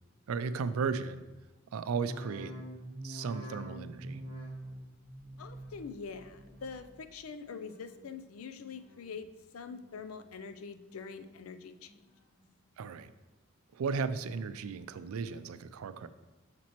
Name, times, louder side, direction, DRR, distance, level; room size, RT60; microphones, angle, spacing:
voice 1, 0.3-1.2 1.7-2.5 3.0-4.2 12.8-13.1 13.7-16.1, right 5 dB, 90° right, 13 dB, 0.4 m, -35 dB
sound 1, 1.8-7.2 7.5-8.1 8.6-9.2 9.7-10.3 10.7-11.4 11.9-12.4 13.0-13.1, right 1 dB, 25° left, 2.3 m, -47 dB
voice 2, 5.4-9.3 9.5-11.9, left 5 dB, 90° left, 10 dB, 0.5 m, -44 dB
7.2 x 6.0 x 3.0 m, 1.1 s
head